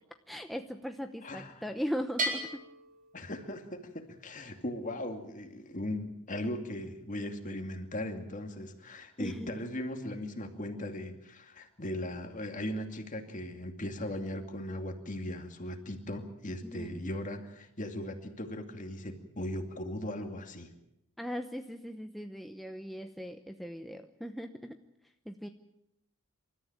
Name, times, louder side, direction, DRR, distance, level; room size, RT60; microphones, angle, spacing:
voice 1, 0.3-2.6 9.2-9.6 16.6-17.1 21.2-24.8 25.3-25.5, equal, ahead, 5 dB, 0.8 m, -39 dB
voice 2, 1.2-1.6 3.1-20.7, left 1 dB, 35° left, 5 dB, 2.5 m, -38 dB
Bell, 2.2-3.9, right 1 dB, 40° right, 4.7 m, -36 dB
28.0 x 13.5 x 8.9 m, 0.83 s
head